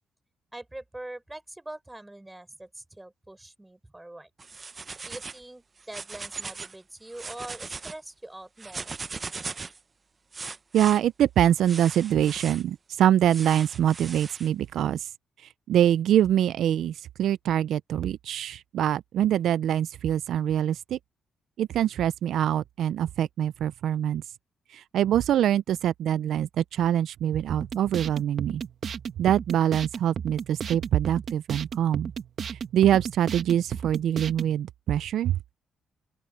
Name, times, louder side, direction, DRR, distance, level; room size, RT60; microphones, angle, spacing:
voice 1, 0.5-4.3 5.0-9.0, right 1 dB, 10° right, 5.7 m, -43 dB
sound 1, 4.4-5.4 5.8-6.8 7.1-8.0 8.6-9.8 10.3-11.0 11.6-12.6 13.3-14.5, right 4 dB, 30° right, 0.7 m, -38 dB
voice 2, 10.7-15.1 15.4-21.0 21.6-24.2 24.7-28.6 29.2-32.1 32.5-35.4, right 10 dB, 75° right, 0.4 m, -24 dB
sound 2, 27.5-34.5, right 7 dB, 50° right, 1.6 m, -34 dB
open air
cardioid pair, 125°, 0 cm